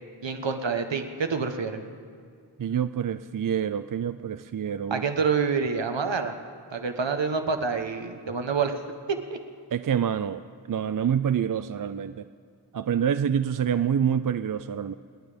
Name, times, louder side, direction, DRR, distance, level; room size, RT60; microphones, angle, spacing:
voice 1, 0.2-1.8 4.9-6.3 6.7-8.7 9.1-9.4, right 5 dB, 70° right, 6 dB, 1.3 m, -27 dB
voice 2, 2.6-5.0 9.7-10.4 10.7-12.2 12.7-14.9, right 8 dB, 45° right, 11 dB, 0.5 m, -27 dB
28.0 x 9.4 x 5.1 m, 2.1 s
wide cardioid pair, 50°, 46 cm